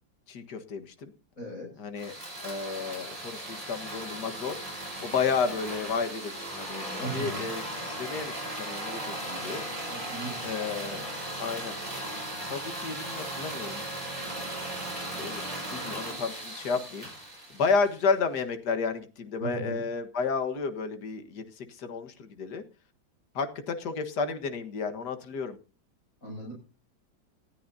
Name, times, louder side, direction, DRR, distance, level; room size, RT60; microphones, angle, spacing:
voice 1, 0.3-1.1 1.8-2.1 2.4-4.6 5.0-9.0 9.3-9.6 10.4-11.0 11.4-11.7 12.4-13.8 15.2-15.4 15.7-17.1 17.5-22.6 23.4-25.6, left 5 dB, 60° left, 7 dB, 2.0 m, -31 dB
voice 2, 1.4-1.7 7.0-7.4 9.9-10.6 19.4-19.8 26.2-26.5, right 2 dB, 45° left, -2 dB, 6.9 m, -38 dB
sound 1, 2.0-18.1, right 1 dB, 15° right, 5.6 m, -37 dB
19.0 x 13.0 x 2.7 m, 0.35 s
omnidirectional pair, 2.1 m